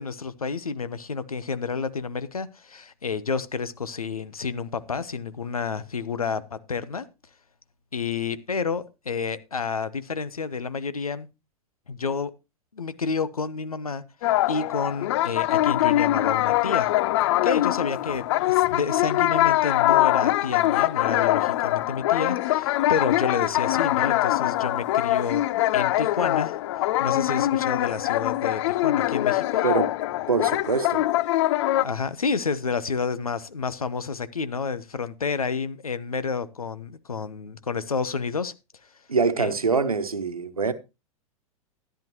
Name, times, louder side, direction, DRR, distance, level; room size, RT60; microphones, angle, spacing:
voice 1, 0.0-7.1 7.9-11.3 11.9-12.3 12.7-14.0 14.5-16.9 17.4-25.4 25.7-26.5 27.0-29.6 31.8-38.5 39.4-39.5, left 5 dB, 85° left, 0.9 m, -30 dB
sound 1, 14.2-31.8, left 15 dB, 55° left, 0.5 m, -23 dB
voice 2, 30.3-31.0 39.1-40.7, right 4 dB, 90° right, 1.1 m, -24 dB
13.5 x 10.5 x 3.0 m
figure-of-eight pair, 95°, 18 cm